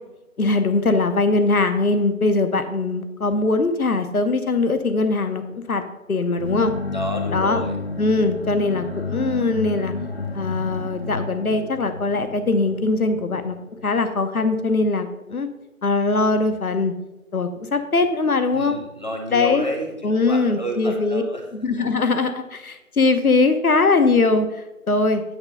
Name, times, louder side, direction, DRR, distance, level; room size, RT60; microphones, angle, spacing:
voice 1, 0.4-5.8 6.1-6.7 7.3-7.6 8.0-9.9 10.3-13.6 13.8-15.5 15.8-16.9 17.3-18.8 19.3-19.7 20.0-21.2 21.6-25.2, left 3 dB, 80° left, 8 dB, 0.9 m, -21 dB
sound 1, 6.4-14.1, left 3 dB, 45° left, 0.5 m, -31 dB
voice 2, 6.9-7.8 18.5-21.4, equal, 30° right, 2 dB, 0.8 m, -30 dB
8.8 x 3.3 x 5.5 m, 1.0 s
figure-of-eight pair, 160°, 43 cm